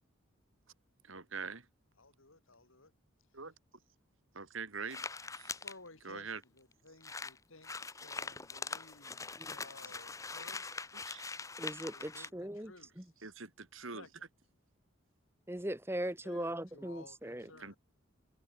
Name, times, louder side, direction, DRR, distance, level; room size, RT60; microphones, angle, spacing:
voice 1, 1.0-1.7 3.3-3.5 4.3-5.1 5.3-5.5 6.0-6.4 11.0-11.2 13.2-14.1 17.5-17.8, right 5 dB, 70° right, 2.7 m, -43 dB
voice 2, 2.0-2.9 5.5-10.8 11.9-13.1 13.8-14.3 16.2-17.8, left 3 dB, 75° left, 4.4 m, -57 dB
sound 1, 4.9-5.7 6.4-6.5 6.7-6.8 7.0-12.3, left 4 dB, 15° left, 0.8 m, -43 dB
voice 3, 11.6-13.0 15.5-17.5, right 1 dB, 10° right, 2.0 m, -39 dB
head